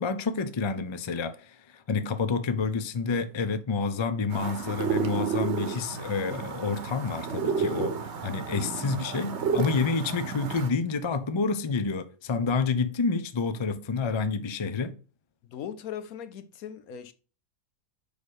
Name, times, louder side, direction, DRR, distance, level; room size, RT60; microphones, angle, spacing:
voice 1, 0.0-8.0 8.2-15.0, left 4 dB, 45° left, 0.3 m, -29 dB
sound 1, 4.3-10.7, right 6 dB, 55° right, 1.1 m, -31 dB
voice 2, 15.4-17.1, left 9 dB, 75° left, 1.2 m, -39 dB
5.1 x 5.0 x 6.3 m
omnidirectional pair, 1.5 m